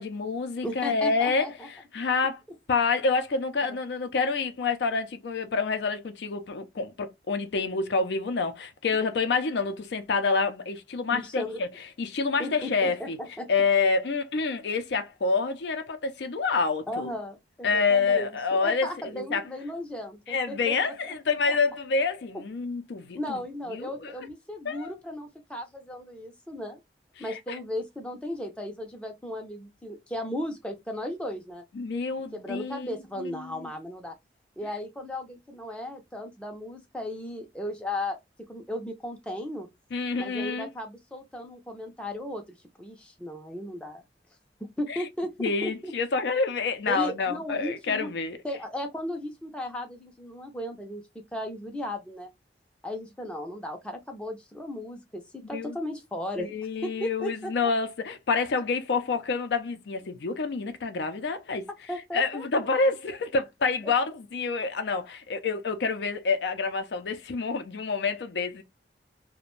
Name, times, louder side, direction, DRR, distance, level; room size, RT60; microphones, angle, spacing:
voice 1, 0.0-2.4 2.7-13.2 13.5-17.1 17.6-18.9 19.1-19.4 20.3-23.4 23.7-24.1 24.7-24.9 27.2-27.6 31.7-33.7 39.9-40.7 44.9-45.0 45.4-48.4 55.5-55.8 56.4-61.7 62.1-68.6, left 4 dB, 70° left, 0.4 m, -28 dB
voice 2, 0.6-1.7 11.1-11.6 12.4-13.5 16.9-21.1 21.5-21.6 23.2-26.8 27.2-31.6 32.3-34.1 34.6-38.2 38.5-39.7 40.2-42.4 42.8-44.0 44.8-45.9 46.9-48.1 48.4-51.0 51.3-52.3 52.8-56.5 56.8-57.7 61.9-62.5 63.8-63.9, left 1 dB, 5° left, 0.4 m, -36 dB
2.5 x 2.1 x 3.0 m
head